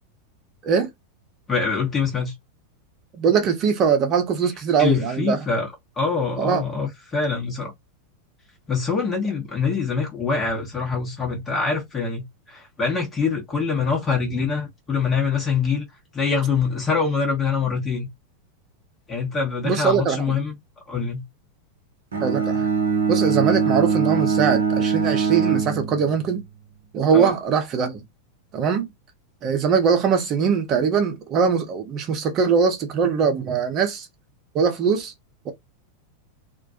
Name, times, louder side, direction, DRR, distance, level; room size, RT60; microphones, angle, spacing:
voice 1, 1.5-2.3 4.8-5.7 6.0-7.7 8.7-15.8 16.1-18.1 19.1-20.5 20.9-21.2 27.1-27.3, left 5 dB, 20° left, 0.9 m, -24 dB
voice 2, 3.2-5.4 6.4-6.6 19.6-20.4 22.2-22.7 23.1-26.4 26.9-28.0 28.5-28.9 29.4-34.1 34.5-35.1 35.4-35.5, right 6 dB, 35° right, 0.7 m, -21 dB
Bowed string instrument, 22.1-26.4, right 5 dB, 70° right, 0.7 m, -22 dB
2.2 x 2.1 x 2.7 m
figure-of-eight pair, 90°, 0 cm